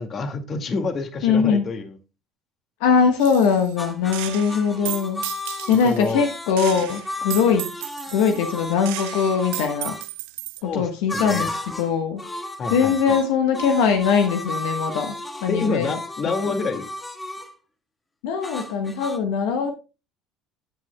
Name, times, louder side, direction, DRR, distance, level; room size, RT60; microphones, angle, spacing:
voice 1, 0.0-1.9 5.8-6.2 10.6-11.5 12.6-12.9 15.5-16.8, left 4 dB, 40° left, 2.1 m, -27 dB
voice 2, 1.2-1.7 2.8-5.3 5.7-7.7 8.1-9.9 10.6-12.3 12.7-15.2 15.4-16.0 16.2-16.3 18.2-19.7, left 6 dB, 80° left, 1.2 m, -21 dB
Gunshot gunfire, 3.2-3.8 4.1-6.1 6.6-10.6, right 20 dB, 80° right, 0.5 m, -34 dB
sound 1, 3.8-10.1 11.1-11.9 12.2-17.5 18.4-19.2, left 1 dB, 15° left, 1.7 m, -33 dB
13.5 x 8.0 x 2.2 m
supercardioid pair, 85°, 0 cm